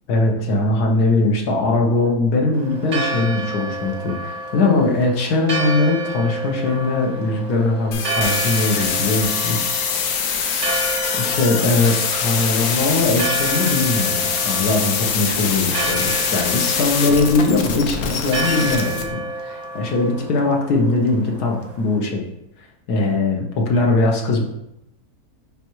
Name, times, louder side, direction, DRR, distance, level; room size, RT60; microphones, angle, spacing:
voice 1, 0.1-9.7 11.2-22.2 22.9-24.4, left 3 dB, 90° left, 0 dB, 1.6 m, -20 dB
Church bell, 2.5-22.0, right 2 dB, 40° right, 0.6 m, -30 dB
sound 1, 7.9-19.0, left 6 dB, 75° left, 1.2 m, -23 dB
9.7 x 3.5 x 3.1 m, 0.85 s
omnidirectional pair, 1.6 m